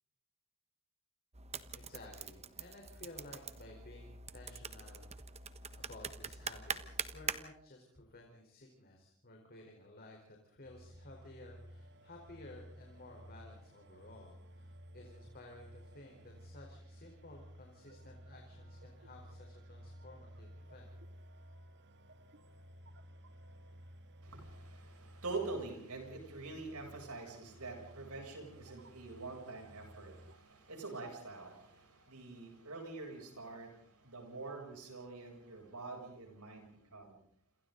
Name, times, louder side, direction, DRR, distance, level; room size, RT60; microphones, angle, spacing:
sound 1, 1.3-7.4, right 5 dB, 30° right, 1.2 m, -44 dB
voice 1, 1.7-5.1 5.7-20.9, left 2 dB, 45° left, 1 dB, 4.3 m, -55 dB
sound 2, 10.6-30.3, equal, 55° right, 1.6 m, -55 dB
voice 2, 24.2-37.2, right 3 dB, 90° right, 2 dB, 7.6 m, -45 dB
28.5 x 27.0 x 4.0 m, 0.64 s
head